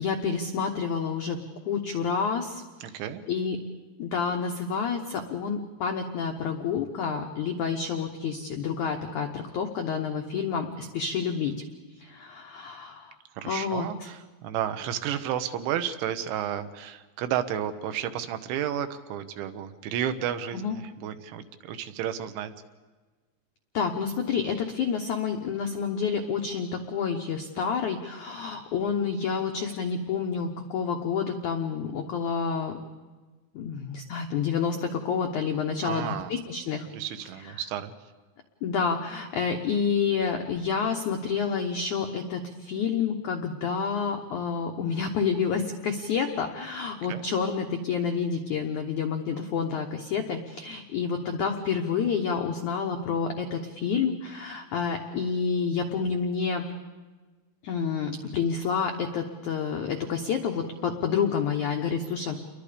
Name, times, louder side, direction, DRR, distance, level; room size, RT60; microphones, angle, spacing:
voice 1, 0.0-1.4 1.6-2.6 3.3-3.6 4.0-11.5 12.0-13.1 13.4-13.9 20.5-20.8 23.7-32.8 33.5-36.9 38.6-56.6 57.6-62.4, left 6 dB, 85° left, 3 dB, 1.7 m, -29 dB
voice 2, 2.8-3.2 13.4-22.5 35.8-36.3 36.9-37.9 47.1-47.3, right 10 dB, 80° right, 9 dB, 3.3 m, -32 dB
29.0 x 22.5 x 5.1 m, 1.3 s
omnidirectional pair, 5.3 m